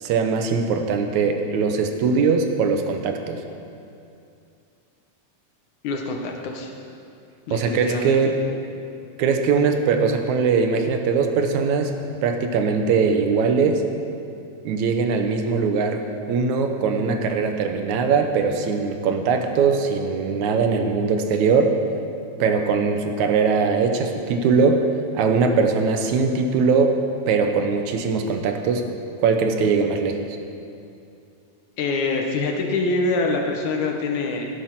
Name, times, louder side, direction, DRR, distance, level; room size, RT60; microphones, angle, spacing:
voice 1, 0.0-3.4 7.5-8.3 9.2-11.9 12.2-13.8 14.6-16.0 16.3-21.8 22.4-24.8 25.1-26.9 27.3-28.8 29.2-30.2, right 5 dB, 75° right, 5 dB, 2.2 m, -21 dB
voice 2, 5.8-6.7 7.5-8.2 31.8-34.5, left 3 dB, 75° left, 2 dB, 2.4 m, -25 dB
16.0 x 8.5 x 5.9 m, 2.6 s
omnidirectional pair, 3.5 m